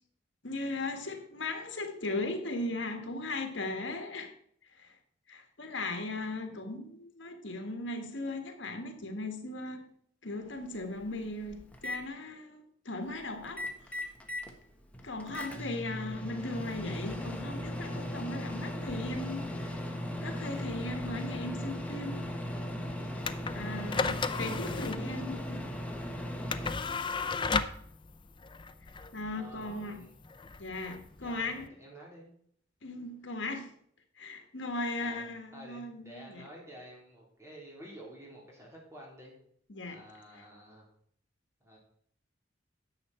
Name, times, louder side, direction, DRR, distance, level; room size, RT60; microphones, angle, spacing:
voice 1, 0.4-4.3 4.8-4.9 5.3-9.8 10.2-14.1 15.0-19.8 20.2-22.3 23.0-25.7 29.1-30.0 30.6-31.7 32.8-33.7 34.2-36.4 39.7-40.0, left 2 dB, 75° left, 1.6 m, -38 dB
Microwave oven, 10.5-10.6 11.0-12.0 13.4-14.5 14.9-26.7, left 1 dB, 10° left, 1.3 m, -37 dB
sound 1, 23.2-31.7, left 4 dB, 25° left, 0.5 m, -35 dB
voice 2, 23.7-24.0 29.3-30.2 31.2-32.3 35.0-35.3 35.5-39.3 39.9-40.9 41.6-41.8, equal, 15° right, 3.7 m, -50 dB
10.5 x 7.5 x 4.4 m
head